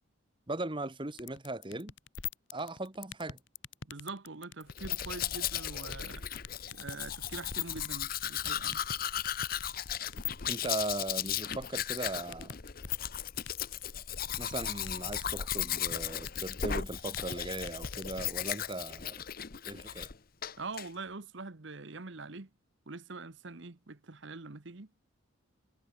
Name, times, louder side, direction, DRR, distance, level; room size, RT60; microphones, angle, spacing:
voice 1, 0.5-1.9 2.5-3.4 10.5-12.5 14.4-19.2 19.7-20.1, right 2 dB, 25° right, 1.3 m, -38 dB
sound 1, 1.2-18.5, left 10 dB, 60° left, 1.2 m, -39 dB
voice 2, 3.9-6.3 6.7-8.8 20.6-22.5 22.9-25.0, right 3 dB, 60° right, 1.1 m, -44 dB
Domestic sounds home sounds, 4.7-20.1 20.4-20.9, left 10 dB, 45° left, 0.8 m, -36 dB
head